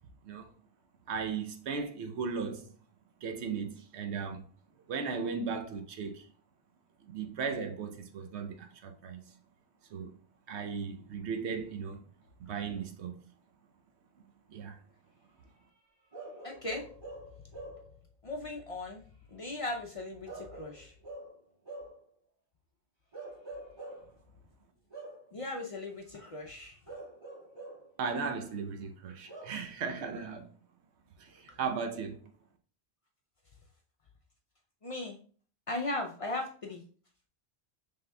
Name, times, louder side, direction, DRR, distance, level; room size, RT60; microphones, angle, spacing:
voice 1, 1.1-2.7 3.2-4.4 4.9-6.3 7.1-9.2 9.9-10.1 10.5-12.0 12.5-13.1 14.5-14.8 28.0-30.5 31.2-32.3, right 5 dB, 85° right, 1.0 m, -36 dB
Bark / Livestock farm animals working animals, 16.1-17.9 20.3-22.0 23.1-24.1 24.9-25.3 26.9-27.9 29.3-29.7, right 2 dB, 25° right, 1.7 m, -46 dB
voice 2, 16.4-16.8 18.2-19.0 19.3-20.9 25.3-26.8 34.8-35.2 35.7-36.8, left 2 dB, 50° left, 0.4 m, -37 dB
5.5 x 3.5 x 2.2 m
omnidirectional pair, 1.1 m